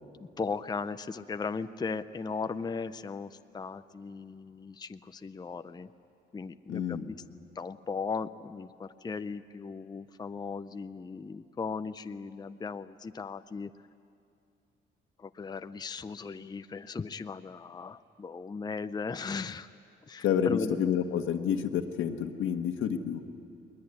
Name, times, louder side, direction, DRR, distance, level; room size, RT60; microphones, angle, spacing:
voice 1, 0.2-5.9 6.3-7.2 7.5-13.7 15.2-19.7 20.1-20.8, left 4 dB, 20° left, 11 dB, 0.5 m, -37 dB
voice 2, 6.7-7.1 20.2-23.2, left 8 dB, 80° left, 6 dB, 1.5 m, -29 dB
21.0 x 20.5 x 9.7 m, 2.5 s
cardioid pair, 90°, 20 cm